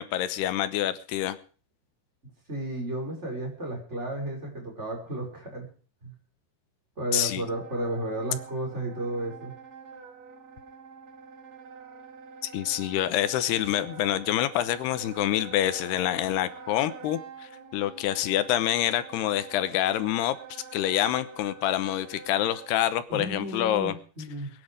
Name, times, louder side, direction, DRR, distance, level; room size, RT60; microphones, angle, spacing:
voice 1, 0.0-1.4 7.1-7.4 12.5-24.0, left 12 dB, 80° left, 14 dB, 2.9 m, -27 dB
voice 2, 2.5-5.7 6.0-6.1 7.0-9.5 23.1-24.5, right 1 dB, 15° right, 0 dB, 6.0 m, -33 dB
Wind instrument woodwind instrument, 7.3-22.8, right 5 dB, 60° right, 4.1 m, -46 dB
22.0 x 10.0 x 5.0 m, 0.41 s
omnidirectional pair, 4.8 m